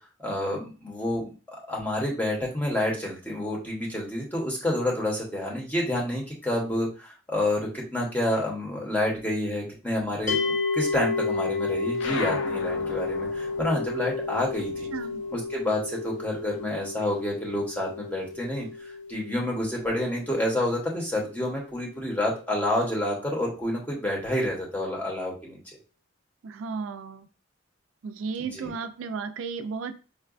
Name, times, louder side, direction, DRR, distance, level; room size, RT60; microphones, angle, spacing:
voice 1, 0.2-14.9 15.3-25.6 28.5-28.7, left 1 dB, 10° left, -3 dB, 0.8 m, -29 dB
sound 1, 10.3-21.4, left 4 dB, 40° left, 0.6 m, -32 dB
sound 2, 11.9-16.8 17.1-18.6, left 4 dB, 80° left, 0.4 m, -39 dB
voice 2, 14.9-15.2 26.4-27.3 28.0-29.9, right 5 dB, 80° right, 9 dB, 0.3 m, -34 dB
4.6 x 2.2 x 2.4 m, 0.34 s
head